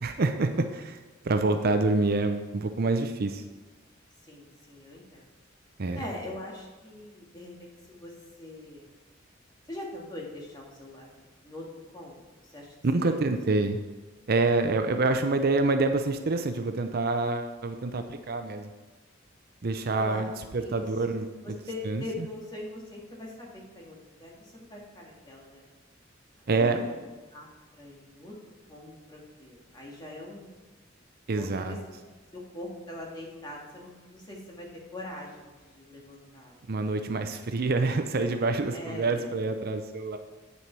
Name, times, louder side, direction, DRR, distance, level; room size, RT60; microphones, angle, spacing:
voice 1, 0.0-1.0 1.2-3.4 5.8-6.0 12.8-13.8 14.3-18.7 19.6-21.3 21.9-22.0 26.5-26.8 31.3-31.8 36.7-40.2, right 3 dB, 50° right, 7 dB, 0.6 m, -27 dB
voice 2, 4.3-5.3 6.0-8.8 9.7-11.6 11.9-12.7 13.0-13.1 13.5-13.6 20.0-20.3 20.6-20.9 21.4-25.6 26.4-27.0 27.3-27.5 27.8-28.3 28.7-30.5 31.3-32.0 32.3-36.7 38.7-39.3, left 1 dB, 20° left, -2 dB, 2.0 m, -42 dB
8.5 x 6.9 x 4.6 m, 1.3 s
head